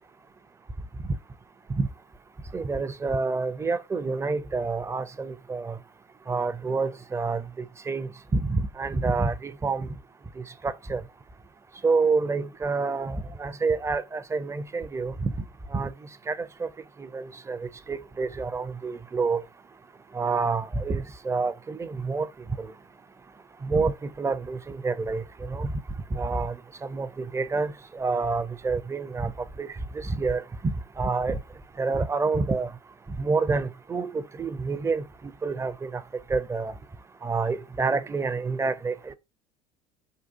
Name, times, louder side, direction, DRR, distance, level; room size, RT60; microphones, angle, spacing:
voice 1, 2.5-5.8 6.3-7.4 7.9-9.9 10.6-11.0 11.8-15.3 15.7-15.9 16.3-16.7 17.0-19.4 20.1-22.3 22.6-22.7 23.6-25.7 26.1-26.6 26.8-29.3 29.6-29.7 29.9-31.4 31.8-32.7 33.2-35.0 35.4-36.0 36.3-36.7 37.2-39.1, right 4 dB, 15° right, 0.4 m, -28 dB
3.7 x 2.3 x 2.7 m
hypercardioid pair, 70°, 20 cm